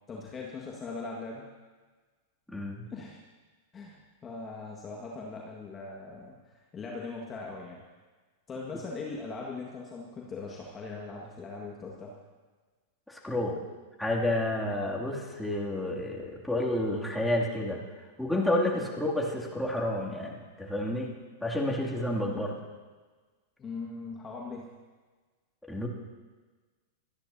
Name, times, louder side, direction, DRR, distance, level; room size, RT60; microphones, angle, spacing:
voice 1, 0.1-1.4 2.9-3.2 3.7-7.8 8.5-12.1 18.7-18.9 23.6-24.7, left 3 dB, 25° left, -2 dB, 1.8 m, -40 dB
voice 2, 2.5-2.9 13.1-13.6 14.0-17.8 18.2-21.1 21.4-22.6 25.7-25.9, left 1 dB, 5° left, -3 dB, 2.7 m, -30 dB
26.0 x 10.5 x 2.8 m, 1.4 s
hypercardioid pair, 100°, 0 cm